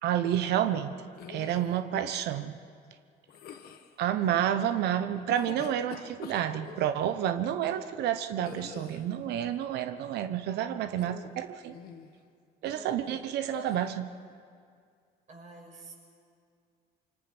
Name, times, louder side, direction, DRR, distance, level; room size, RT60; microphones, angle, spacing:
voice 1, 0.0-2.6 4.0-11.7 12.6-14.1, right 10 dB, 80° right, 10 dB, 1.0 m, -30 dB
sound 1, 1.1-1.8 3.3-3.9 5.2-6.9 8.4-9.2 10.9-11.4 11.7-12.1 13.5-14.0, left 8 dB, 65° left, 1.5 m, -45 dB
voice 2, 12.6-13.3 15.3-15.9, right 2 dB, 45° right, -2 dB, 7.4 m, -48 dB
26.5 x 24.5 x 6.1 m, 2.2 s
cardioid pair, 110°, 17 cm